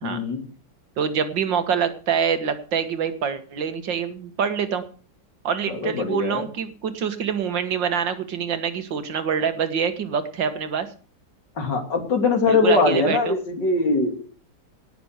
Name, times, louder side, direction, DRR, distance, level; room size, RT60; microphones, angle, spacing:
voice 1, 0.0-0.4 5.7-6.5 11.6-14.2, left 3 dB, 70° left, 4 dB, 3.4 m, -22 dB
voice 2, 1.0-4.8 5.4-10.9 12.5-13.4, right 7 dB, 75° right, 9 dB, 2.1 m, -25 dB
18.0 x 7.0 x 6.5 m, 0.41 s
omnidirectional pair, 2.0 m